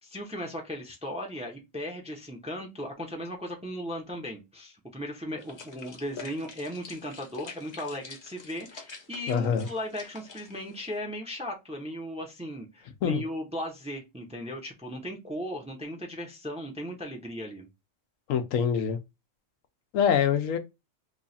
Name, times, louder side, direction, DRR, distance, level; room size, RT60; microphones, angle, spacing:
voice 1, 0.0-17.7, equal, 5° right, 0.6 m, -37 dB
sound 1, 5.4-11.0, left 4 dB, 60° left, 1.2 m, -47 dB
voice 2, 9.3-9.7 13.0-13.2 18.3-19.0 19.9-20.6, left 7 dB, 80° left, 1.0 m, -25 dB
3.1 x 2.4 x 4.0 m
omnidirectional pair, 1.3 m